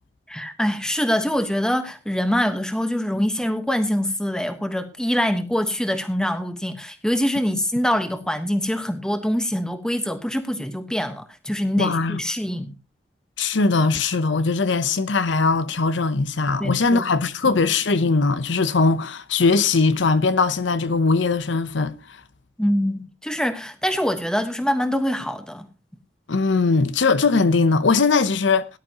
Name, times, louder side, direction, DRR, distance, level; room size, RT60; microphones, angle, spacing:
voice 1, 0.3-12.7 16.6-17.0 22.6-25.7, equal, 5° left, 1.2 m, -24 dB
voice 2, 11.8-12.2 13.4-21.9 26.3-28.7, left 4 dB, 75° left, 0.8 m, -20 dB
18.0 x 11.0 x 2.9 m
head